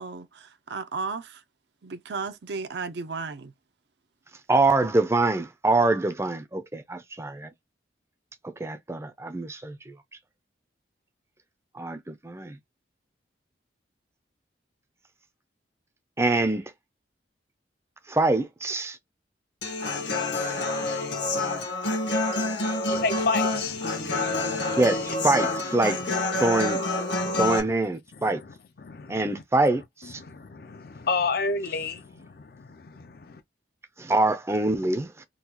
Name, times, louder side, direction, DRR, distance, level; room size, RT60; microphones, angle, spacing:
voice 1, 0.0-1.4 1.8-3.5, right 4 dB, 65° right, 0.5 m, -34 dB
voice 2, 4.5-7.5 8.6-9.9 11.7-12.6 16.2-16.6 18.1-19.0 24.8-26.0 26.4-26.8 27.4-28.4 29.1-30.2 34.0-35.2, right 2 dB, 15° right, 0.5 m, -25 dB
Human voice / Acoustic guitar, 19.6-27.6, left 2 dB, 75° left, 1.3 m, -27 dB
voice 3, 22.9-25.1 25.6-26.8 27.2-27.7 28.1-29.4 30.0-33.4, left 4 dB, 55° left, 0.5 m, -33 dB
3.8 x 2.3 x 2.9 m
head